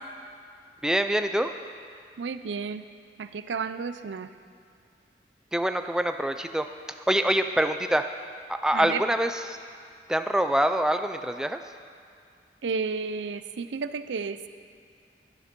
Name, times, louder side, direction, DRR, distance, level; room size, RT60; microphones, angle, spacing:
voice 1, 0.8-1.5 5.5-6.7 7.1-8.0 8.5-9.6 10.1-11.6, right 1 dB, 5° right, 7 dB, 0.3 m, -25 dB
voice 2, 2.2-2.8 3.2-4.3 8.7-9.0 12.6-14.5, right 5 dB, 85° right, 11 dB, 0.5 m, -32 dB
11.5 x 11.0 x 5.2 m, 2.3 s
head